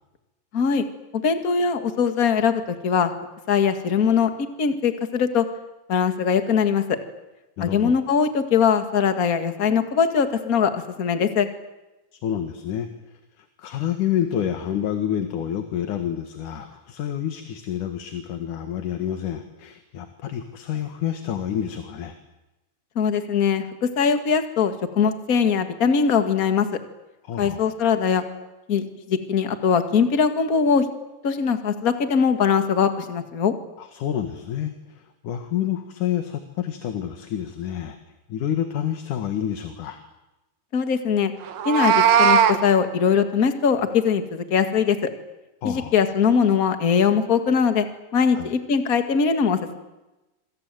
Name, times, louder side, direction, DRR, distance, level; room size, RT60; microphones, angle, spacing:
voice 1, 0.5-0.8 1.1-3.1 3.5-4.3 4.6-5.5 5.9-7.0 7.6-11.5 23.0-26.7 27.4-28.2 28.7-30.9 31.2-33.5 40.7-41.3 41.7-45.1 45.6-47.9 48.1-49.8, left 6 dB, 35° left, 8 dB, 1.8 m, -21 dB
voice 2, 7.6-7.9 12.1-12.9 13.4-22.1 27.2-27.6 33.8-38.0 38.3-40.0 45.6-45.9 48.3-48.5, left 10 dB, 70° left, 7 dB, 3.1 m, -28 dB
Meow, 41.5-42.6, right 8 dB, 85° right, 3.2 m, -17 dB
27.0 x 22.5 x 9.1 m, 1.0 s
omnidirectional pair, 3.9 m